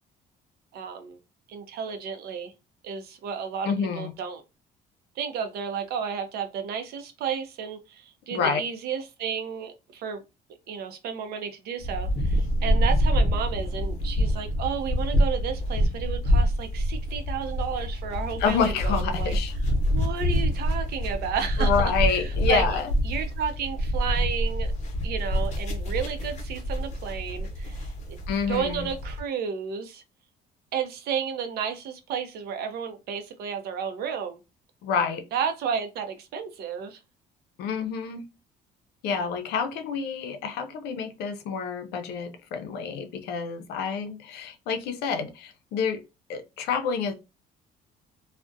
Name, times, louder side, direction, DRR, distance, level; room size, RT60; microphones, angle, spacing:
voice 1, 0.7-1.2 1.5-2.5 2.8-4.4 5.2-10.2 10.7-19.3 19.9-22.7 23.0-24.7 25.0-27.8 28.5-30.0 30.7-34.4 35.3-37.0, right 7 dB, 70° right, 0.5 m, -32 dB
voice 2, 3.6-4.1 8.3-8.6 18.4-19.5 21.6-22.9 28.3-28.9 34.8-35.2 37.6-38.3 39.0-46.0 46.3-47.1, left 6 dB, 80° left, 0.5 m, -28 dB
sound 1, 11.8-29.2, equal, 45° left, 0.7 m, -26 dB
2.3 x 2.1 x 2.5 m
cardioid pair, 110°, 17 cm